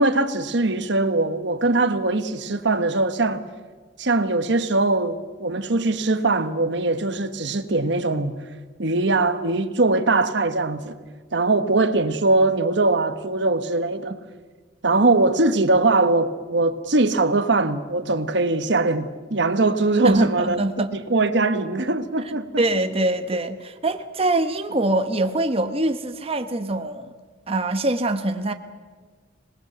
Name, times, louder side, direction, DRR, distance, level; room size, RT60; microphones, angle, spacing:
voice 1, 0.0-3.4 4.0-8.4 8.8-10.9 11.3-14.2 14.8-20.6 21.1-22.6, right 2 dB, 65° right, 1.3 m, -21 dB
voice 2, 20.0-20.9 22.6-27.1 27.5-28.5, right 2 dB, 30° right, 1.2 m, -23 dB
26.5 x 20.0 x 8.0 m
head